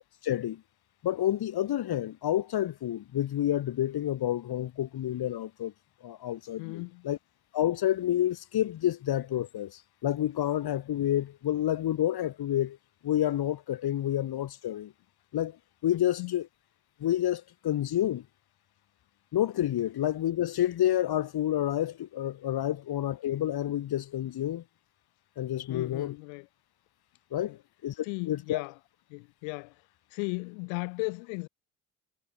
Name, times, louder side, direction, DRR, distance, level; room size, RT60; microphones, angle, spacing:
voice 1, 0.2-0.6 1.0-5.7 6.0-7.2 7.5-12.8 13.0-14.9 15.3-15.6 15.8-16.5 17.0-18.2 19.3-24.6 25.4-26.1 27.3-27.6 27.8-28.6, left 12 dB, 60° left, 2.2 m, -29 dB
voice 2, 6.6-7.1 16.2-16.4 25.7-26.5 27.5-27.6 28.0-28.8 29.1-31.5, left 40 dB or more, 80° left, 1.8 m, -36 dB
hypercardioid pair, 55°, 43 cm